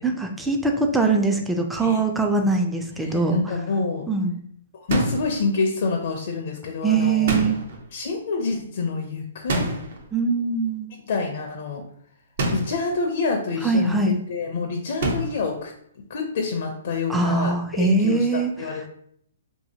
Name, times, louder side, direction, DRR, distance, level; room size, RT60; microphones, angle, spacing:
voice 1, 0.0-3.5 4.1-4.4 6.8-7.6 10.1-10.9 13.6-14.2 17.1-18.5, right 3 dB, 5° right, 3 dB, 0.3 m, -22 dB
voice 2, 3.0-4.1 4.7-7.3 7.9-9.7 11.1-11.8 12.5-15.7 16.1-17.5 17.8-18.9, left 4 dB, 60° left, 3 dB, 0.5 m, -27 dB
sound 1, 4.9-5.4 7.3-7.9 9.5-10.0 12.4-12.9 15.0-15.5, right 1 dB, 60° right, 0.7 m, -26 dB
2.7 x 2.7 x 2.7 m, 0.67 s
hypercardioid pair, 140°, 0 cm